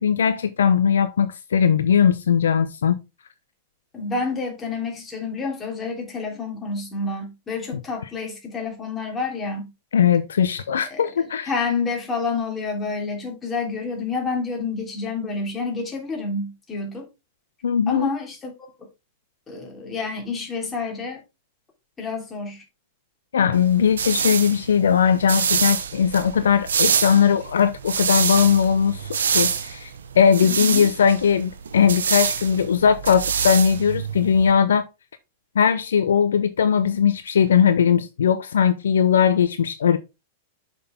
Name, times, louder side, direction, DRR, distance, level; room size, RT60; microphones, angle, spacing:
voice 1, 0.0-3.0 9.9-11.5 17.6-18.1 23.3-29.0 29.3-29.9 30.2-34.8 35.6-40.0, left 7 dB, 70° left, 0.6 m, -19 dB
voice 2, 3.9-9.7 10.8-11.0 11.5-17.1 17.9-18.7 19.5-21.2 22.0-22.6 30.4-30.9, left 4 dB, 20° left, 3.2 m, -29 dB
sound 1, 23.5-34.5, right 6 dB, 75° right, 1.0 m, -26 dB
6.6 x 6.2 x 3.6 m
figure-of-eight pair, 100°, 0 cm